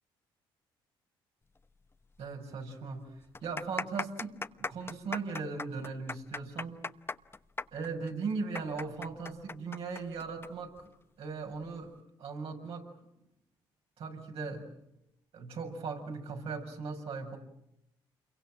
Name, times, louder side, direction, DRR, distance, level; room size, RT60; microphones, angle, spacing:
sound 1, 2.1-2.2 2.5-2.6 3.2-10.5 10.8-10.9 11.6-11.9, left 3 dB, 25° left, 1.0 m, -38 dB
voice 1, 2.2-6.8 7.7-10.9 11.2-11.9 12.2-12.9 14.0-14.7 15.3-17.4, right 4 dB, 70° right, 2 dB, 6.9 m, -38 dB
28.5 x 23.0 x 7.8 m, 0.82 s
supercardioid pair, 60°, 10 cm